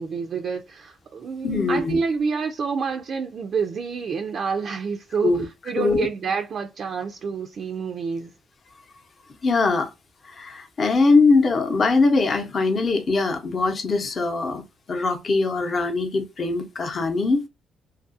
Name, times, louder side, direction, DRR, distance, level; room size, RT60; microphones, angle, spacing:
voice 1, 0.0-5.3 5.7-8.3, right 5 dB, 55° right, 0.3 m, -28 dB
voice 2, 1.4-2.0 5.2-5.4 5.8-6.1 9.4-9.9 10.2-14.6 14.9-17.5, left 3 dB, 45° left, 0.7 m, -21 dB
2.7 x 2.4 x 2.5 m
cardioid pair, 90°, 0 cm